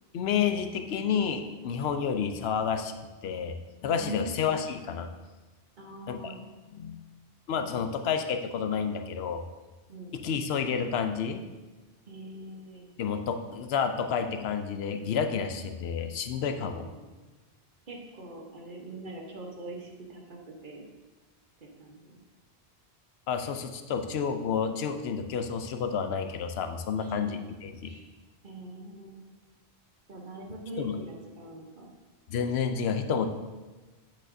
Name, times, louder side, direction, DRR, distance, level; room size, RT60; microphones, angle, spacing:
voice 1, 0.1-2.9 3.2-3.6 3.8-5.1 6.1-6.3 6.7-7.0 7.5-9.4 10.1-11.4 13.0-16.9 23.3-27.9 30.8-31.0 32.3-33.3, left 6 dB, 75° left, 7 dB, 0.8 m, -30 dB
voice 2, 4.0-4.4 5.8-6.5 9.9-10.1 12.1-12.9 16.6-17.2 17.9-20.8 21.6-22.1 27.0-27.5 27.8-28.0 28.4-29.2 30.1-31.9, right 1 dB, 50° right, 0 dB, 1.2 m, -43 dB
8.4 x 6.3 x 2.7 m, 1.2 s
omnidirectional pair, 1.1 m